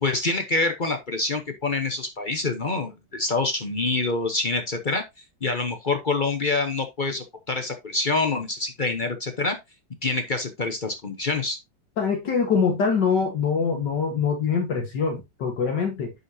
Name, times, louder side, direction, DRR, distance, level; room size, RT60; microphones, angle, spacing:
voice 1, 0.0-5.0 5.4-9.6 10.0-11.6, left 3 dB, 40° left, 0.7 m, -26 dB
voice 2, 12.0-16.1, left 5 dB, 65° left, 2.1 m, -24 dB
9.9 x 5.5 x 2.7 m
omnidirectional pair, 2.0 m